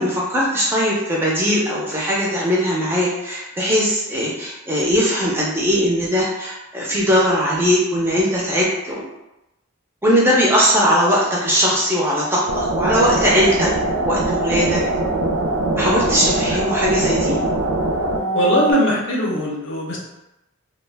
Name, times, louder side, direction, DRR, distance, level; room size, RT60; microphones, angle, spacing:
voice 1, 0.0-9.1 10.0-14.8 15.8-17.4, equal, 10° right, -5 dB, 0.4 m, -19 dB
sound 1, 12.5-18.7, right 2 dB, 70° right, 0.4 m, -22 dB
voice 2, 18.3-20.0, equal, 60° left, -3 dB, 0.6 m, -20 dB
2.3 x 2.1 x 3.2 m, 0.94 s
head